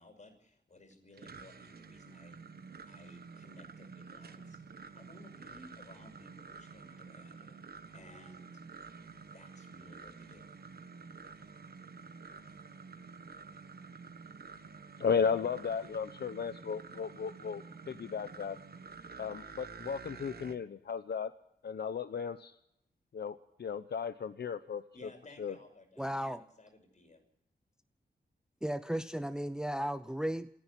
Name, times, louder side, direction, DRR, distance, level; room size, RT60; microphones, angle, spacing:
voice 1, 0.0-2.4 2.9-4.6 4.9-7.7 7.9-8.6 9.3-10.5 24.9-27.2, left 2 dB, 45° left, 5.9 m, -57 dB
sound 1, 0.9-20.6, right 5 dB, 65° right, 1.5 m, -50 dB
voice 2, 15.0-18.6 19.2-21.3 21.6-22.5 23.1-24.8 25.4-25.5, left 6 dB, 70° left, 0.8 m, -35 dB
voice 3, 26.0-26.4 28.6-30.5, equal, 5° right, 0.7 m, -35 dB
28.0 x 10.5 x 10.0 m
wide cardioid pair, 115°, 18 cm